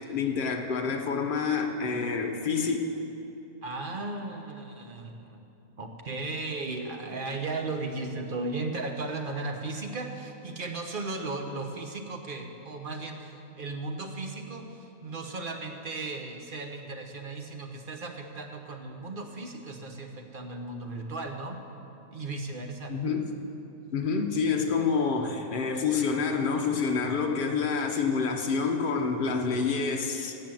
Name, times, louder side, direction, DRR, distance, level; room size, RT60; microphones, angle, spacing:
voice 1, 0.0-2.8 22.9-23.3 23.9-30.4, left 5 dB, 40° left, 3 dB, 1.0 m, -28 dB
voice 2, 3.6-5.5 5.8-21.6 22.1-22.9, right 3 dB, 40° right, 3 dB, 1.0 m, -36 dB
17.0 x 5.7 x 7.7 m, 2.9 s
omnidirectional pair, 1.5 m